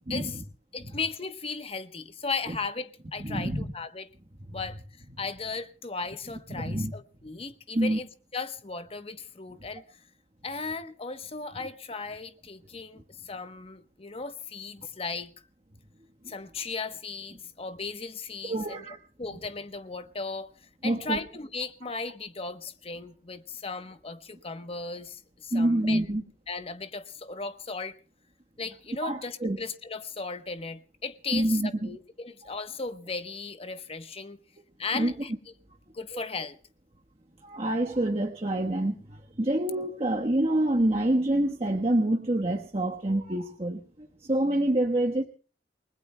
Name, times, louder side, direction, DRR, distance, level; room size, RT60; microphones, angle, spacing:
voice 1, 0.1-0.4 0.7-4.1 4.5-4.8 5.2-8.1 8.3-10.0 10.4-15.3 16.3-18.8 19.2-26.0 26.5-28.0 28.6-34.4 34.8-35.3 35.9-36.6, left 4 dB, 35° left, 1.0 m, -36 dB
voice 2, 3.2-3.7 6.5-6.9 7.7-8.0 18.4-19.0 20.8-21.2 25.5-26.2 29.0-29.6 31.3-32.0 34.9-35.1 37.4-43.8 44.2-45.2, right 1 dB, 35° right, 1.3 m, -26 dB
29.0 x 20.0 x 2.2 m
head